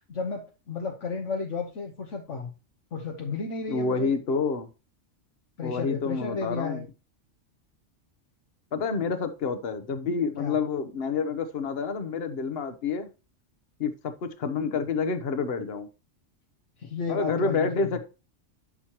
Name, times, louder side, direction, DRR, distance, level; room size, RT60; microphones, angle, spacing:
voice 1, 0.1-2.5 2.9-4.1 5.6-6.9 10.4-10.6 16.8-17.8, left 4 dB, 70° left, 2 dB, 1.4 m, -33 dB
voice 2, 3.7-4.7 5.6-6.9 8.7-13.1 13.8-15.9 17.1-18.0, left 5 dB, 55° left, 9 dB, 1.2 m, -28 dB
12.0 x 6.2 x 3.0 m, 0.31 s
omnidirectional pair, 1.3 m